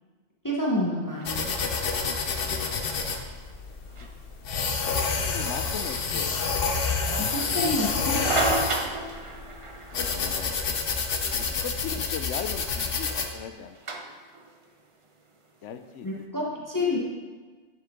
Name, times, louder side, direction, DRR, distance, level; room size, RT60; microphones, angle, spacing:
voice 1, 0.4-1.5 7.2-8.3 16.0-17.0, left 1 dB, 15° left, -4 dB, 1.0 m, -28 dB
sound 1, 1.1-16.2, right 3 dB, 35° right, 0.6 m, -36 dB
sound 2, 1.2-13.3, left 4 dB, 55° left, 1.0 m, -28 dB
voice 2, 2.4-3.0 4.0-4.1 5.3-6.4 9.9-10.6 11.3-13.8 15.6-16.1 16.5-16.7, left 7 dB, 75° left, 10 dB, 0.9 m, -38 dB
11.0 x 6.1 x 3.7 m, 1.4 s
omnidirectional pair, 1.3 m